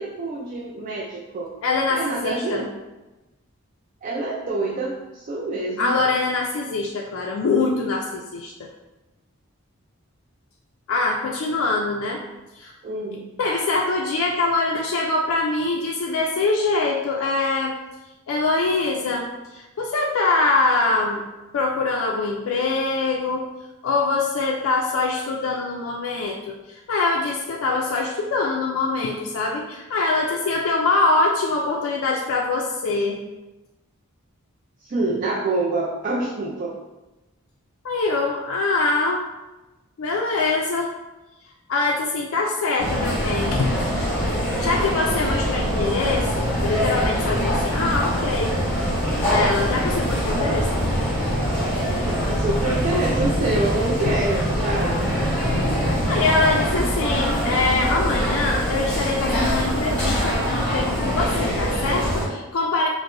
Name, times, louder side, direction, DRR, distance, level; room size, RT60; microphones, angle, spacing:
voice 1, 0.0-1.5 1.9-2.7 4.0-6.0 12.8-13.3 34.8-36.8 52.0-55.0, right 2 dB, 35° right, -2 dB, 0.3 m, -26 dB
voice 2, 1.6-2.7 5.8-8.7 10.9-12.2 12.6-12.7 13.4-17.8 18.3-21.3 21.5-23.5 23.8-33.2 37.8-39.2 40.0-40.9 41.7-44.2 44.6-48.6 49.3-51.0 56.1-62.9, left 3 dB, 65° left, -1 dB, 0.3 m, -23 dB
sound 1, 42.8-62.3, equal, 5° left, 1.2 m, -24 dB
sound 2, 45.4-58.5 58.8-58.9, equal, 70° right, 1.0 m, -32 dB
4.6 x 2.0 x 2.5 m, 1.1 s
head